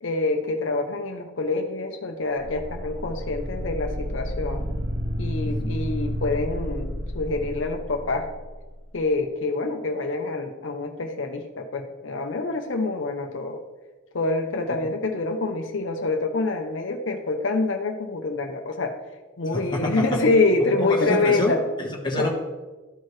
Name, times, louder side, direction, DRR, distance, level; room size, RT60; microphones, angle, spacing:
voice 1, 0.0-4.6 5.2-8.3 8.9-13.6 14.1-19.0 19.4-21.6 22.2-22.3, left 3 dB, 75° left, 4 dB, 0.7 m, -26 dB
sound 1, 2.4-8.6, equal, 40° right, 2.2 m, -30 dB
voice 2, 5.5-5.8 14.7-14.8 19.5-20.2 20.8-22.3, left 1 dB, 25° left, -1 dB, 1.2 m, -28 dB
13.0 x 4.6 x 3.2 m, 1.2 s
head